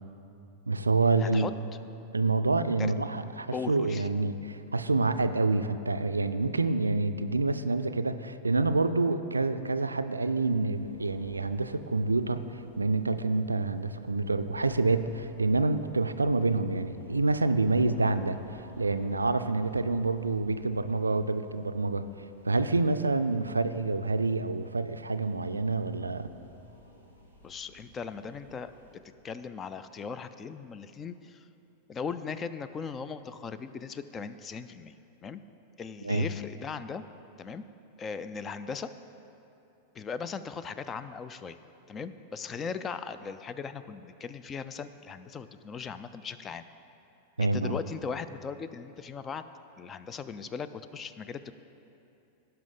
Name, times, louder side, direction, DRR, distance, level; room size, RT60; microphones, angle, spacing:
voice 1, 0.7-1.5 2.1-22.1 22.4-26.3 36.0-36.3 47.4-47.8, right 3 dB, 80° right, 11 dB, 0.3 m, -27 dB
voice 2, 1.2-1.5 2.8-2.9 3.5-4.1 27.4-28.7 29.2-31.4 31.9-34.9 35.2-35.4 35.8-37.0 37.4-37.6 38.0-38.9 40.0-41.6 41.9-46.6 47.4-49.4 49.8-51.5, left 5 dB, 25° left, 12 dB, 0.4 m, -38 dB
sound 1, 10.7-29.0, right 1 dB, 85° left, 1.9 m, -55 dB
17.0 x 5.7 x 3.8 m, 2.8 s
figure-of-eight pair, 90°, 0 cm